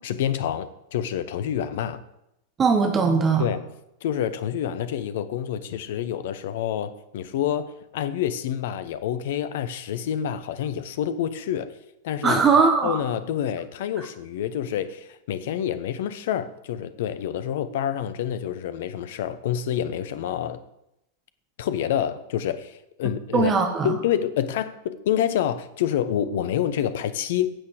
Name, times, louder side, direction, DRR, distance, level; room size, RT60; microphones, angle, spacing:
voice 1, 0.0-2.0 3.4-3.6 4.0-11.7 12.0-12.4 12.8-20.6 21.6-23.5 23.8-27.5, left 10 dB, 55° left, 13 dB, 0.9 m, -27 dB
voice 2, 2.6-3.4 12.2-13.0 23.3-23.9, right 5 dB, 20° right, 5 dB, 1.6 m, -20 dB
15.5 x 8.4 x 5.0 m, 0.85 s
figure-of-eight pair, 90°, 0 cm